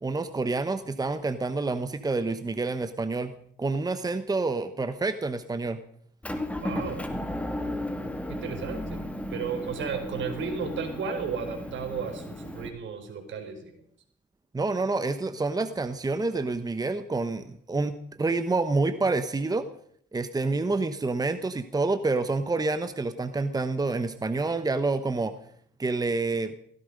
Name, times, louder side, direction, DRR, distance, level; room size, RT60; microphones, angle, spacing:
voice 1, 0.0-3.3 3.6-5.8 14.5-19.7 20.1-25.3 25.8-26.5, right 3 dB, 20° right, 11 dB, 1.1 m, -28 dB
Motor vehicle (road) / Engine, 6.2-12.7, left 1 dB, 5° left, 2.4 m, -34 dB
voice 2, 6.6-7.0 8.3-9.0 9.3-13.7, right 6 dB, 70° right, 5 dB, 4.4 m, -34 dB
16.5 x 16.0 x 5.2 m, 0.62 s
cardioid pair, 90°, 20 cm